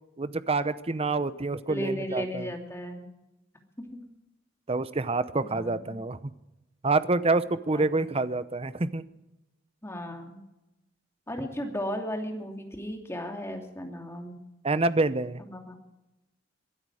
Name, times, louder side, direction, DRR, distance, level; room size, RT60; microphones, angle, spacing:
voice 1, 0.2-2.5 4.7-6.3 6.8-9.0 14.6-15.4, right 3 dB, 30° right, 14 dB, 0.8 m, -27 dB
voice 2, 1.7-3.1 3.9-4.0 5.4-6.0 7.7-7.9 9.8-10.4 11.3-14.4 15.4-15.8, equal, 15° left, 2 dB, 2.8 m, -35 dB
22.5 x 13.0 x 4.9 m, 0.94 s
head